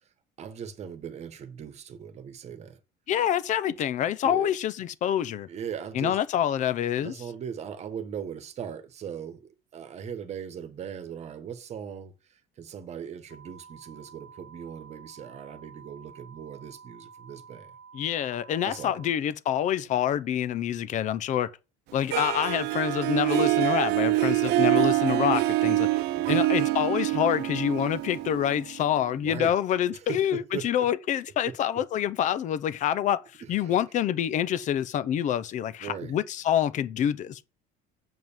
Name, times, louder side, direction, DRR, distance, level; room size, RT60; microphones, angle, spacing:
voice 1, 0.4-2.8 3.6-3.7 4.0-4.5 5.5-6.2 6.9-17.7 18.6-19.0 26.1-26.4 29.1-29.5 29.9-30.9 31.4-31.8 33.4-33.8 35.8-36.2, right 8 dB, 35° right, 1.3 m, -39 dB
voice 2, 3.1-5.5 5.9-7.1 17.9-21.5 21.9-25.9 26.3-33.2 33.5-37.4, left 10 dB, 40° left, 0.7 m, -27 dB
sound 1, 13.3-19.1, right 6 dB, 75° left, 3.2 m, -50 dB
Harp, 22.1-29.0, right 17 dB, 60° right, 0.8 m, -25 dB
7.8 x 5.1 x 7.2 m
cardioid pair, 155°, 19 cm